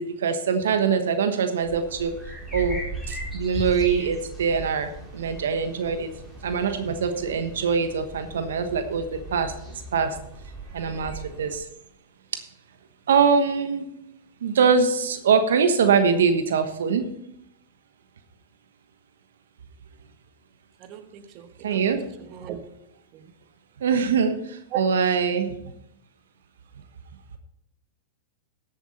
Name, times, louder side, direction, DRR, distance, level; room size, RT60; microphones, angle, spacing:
voice 1, 0.0-2.1 2.5-2.8 3.3-4.9 5.1-6.1 6.4-9.0 9.3-9.5 9.9-10.1 10.7-11.1 11.4-11.5 13.1-13.8 14.4-17.0 21.6-22.0 23.8-24.4 24.7-25.5, right 6 dB, 80° right, 8 dB, 1.2 m, -22 dB
sound 1, 1.6-11.6, right 2 dB, 5° right, 4.2 m, -38 dB
voice 2, 20.8-21.8 22.3-22.6 23.1-23.3 24.7-24.8, right 11 dB, 45° right, 8 dB, 1.2 m, -35 dB
14.5 x 8.0 x 4.2 m, 0.78 s
hypercardioid pair, 115°, 0 cm